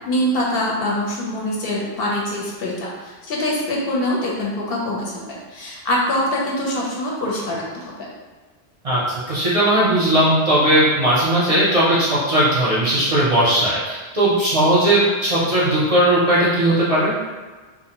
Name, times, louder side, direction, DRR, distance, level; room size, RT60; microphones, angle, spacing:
voice 1, 0.0-8.1, left 1 dB, 65° left, -3 dB, 0.7 m, -24 dB
voice 2, 8.8-17.1, right 1 dB, 45° right, -9 dB, 0.5 m, -18 dB
2.5 x 2.0 x 2.8 m, 1.3 s
omnidirectional pair, 1.1 m